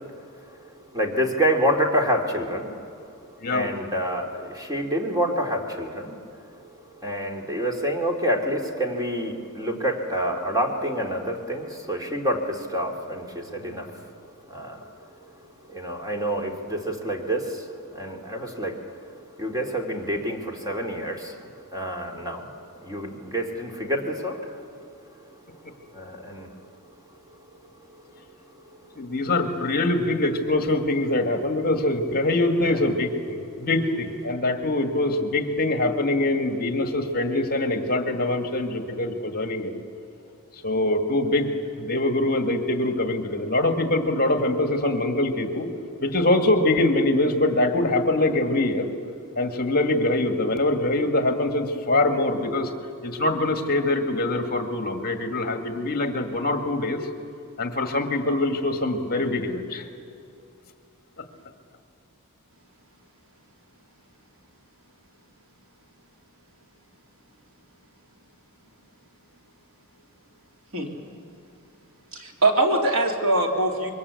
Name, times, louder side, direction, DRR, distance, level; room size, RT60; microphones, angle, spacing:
voice 1, 0.9-2.7 3.5-6.1 7.0-13.9 14.5-14.8 15.7-17.6 17.9-18.8 19.4-21.4 21.7-22.5 22.8-24.6 25.9-26.5 32.7-32.8, equal, 15° right, 2 dB, 2.5 m, -27 dB
voice 2, 29.0-39.8 40.6-45.7 46.0-48.9 49.4-52.7 53.0-57.1 57.6-59.9, left 2 dB, 45° left, 5 dB, 2.0 m, -24 dB
voice 3, 72.1-73.9, right 2 dB, 65° right, 1 dB, 3.2 m, -22 dB
26.5 x 23.0 x 8.4 m, 2.5 s
head